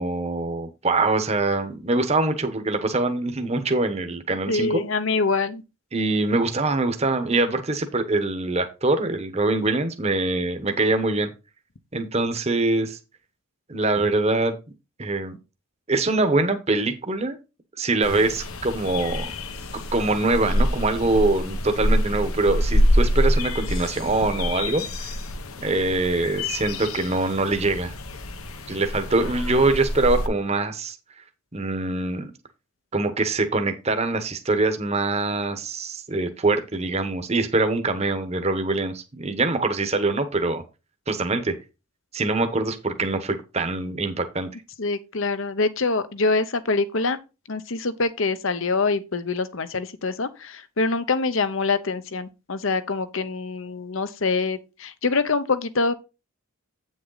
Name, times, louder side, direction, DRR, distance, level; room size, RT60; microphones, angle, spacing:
voice 1, 0.0-4.8 5.9-11.3 11.9-13.0 13.7-14.5 15.0-15.4 15.9-17.4 17.8-19.3 19.7-25.1 25.6-27.9 28.7-31.0 31.5-32.3 32.9-40.6 41.1-41.5 42.1-44.5, right 2 dB, 30° right, 1.0 m, -24 dB
voice 2, 4.5-5.6 44.8-47.2 47.5-55.9, left 3 dB, 65° left, 0.9 m, -25 dB
sound 1, 18.0-30.3, equal, 80° left, 1.2 m, -26 dB
8.6 x 6.4 x 3.9 m
head